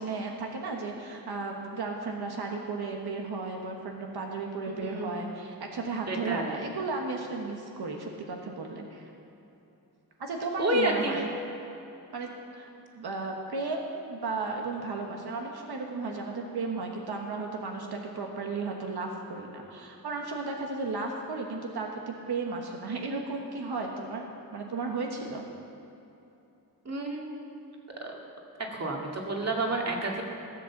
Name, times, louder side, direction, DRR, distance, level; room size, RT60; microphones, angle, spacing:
voice 1, 0.0-9.1 10.2-11.3 12.1-12.3 12.6-12.7 12.9-25.4, right 3 dB, 85° right, 1 dB, 1.3 m, -34 dB
voice 2, 6.1-6.6 10.6-11.1 26.9-27.6 28.0-28.2 28.7-30.2, right 1 dB, 40° right, 0 dB, 2.1 m, -30 dB
17.0 x 7.9 x 7.2 m, 2.9 s
wide cardioid pair, 120°, 38 cm